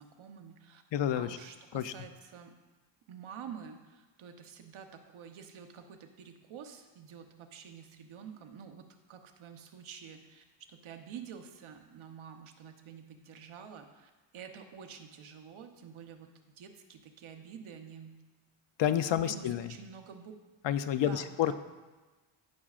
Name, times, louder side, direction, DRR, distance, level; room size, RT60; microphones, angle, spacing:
voice 1, 0.0-0.8 1.1-2.5 3.1-18.2 19.2-20.3 20.9-21.5, right 7 dB, 80° right, 5 dB, 1.0 m, -49 dB
voice 2, 0.9-1.4 1.7-1.9 18.8-19.7 20.6-21.5, left 10 dB, 65° left, 11 dB, 0.6 m, -29 dB
16.0 x 6.1 x 2.4 m, 1.2 s
wide cardioid pair, 120°, 47 cm